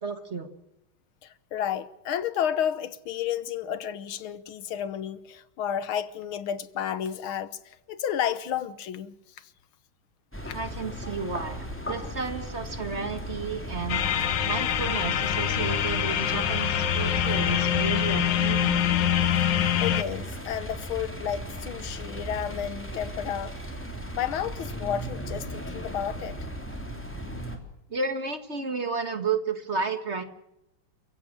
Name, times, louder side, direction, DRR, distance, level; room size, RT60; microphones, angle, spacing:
voice 1, 0.0-0.5 10.5-18.9 27.9-30.2, right 4 dB, 35° right, 1.7 m, -32 dB
voice 2, 1.2-9.5 10.5-10.6 19.4-23.5 24.1-26.4, left 9 dB, 85° left, 2.0 m, -32 dB
sound 1, 10.3-27.6, right 1 dB, 5° left, 3.2 m, -37 dB
sound 2, 13.9-20.0, left 10 dB, 65° left, 1.6 m, -25 dB
29.0 x 15.5 x 7.4 m
omnidirectional pair, 2.2 m